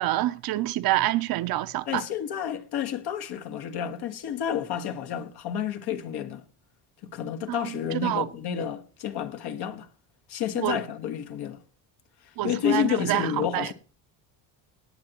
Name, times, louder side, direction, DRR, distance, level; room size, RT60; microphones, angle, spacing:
voice 1, 0.0-2.0 7.5-8.3 10.6-10.8 12.4-13.7, right 15 dB, 55° right, 0.7 m, -27 dB
voice 2, 1.9-6.4 7.1-9.9 10.3-11.6 12.4-13.7, left 9 dB, 60° left, 1.5 m, -30 dB
18.0 x 9.0 x 2.9 m
cardioid pair, 135°, 43 cm